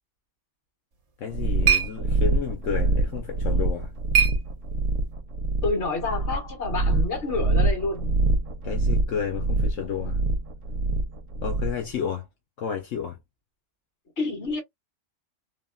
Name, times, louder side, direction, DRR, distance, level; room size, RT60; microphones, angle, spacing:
sound 1, 0.9-5.1, right 8 dB, 60° right, 1.1 m, -29 dB
voice 1, 1.2-3.9 8.6-10.2 11.4-12.3 12.6-13.2, left 7 dB, 80° left, 1.1 m, -31 dB
sound 2, 1.3-11.9, right 2 dB, 80° right, 1.0 m, -25 dB
voice 2, 5.6-8.1 14.2-14.6, left 3 dB, 60° left, 1.8 m, -28 dB
3.4 x 2.3 x 2.2 m
omnidirectional pair, 1.3 m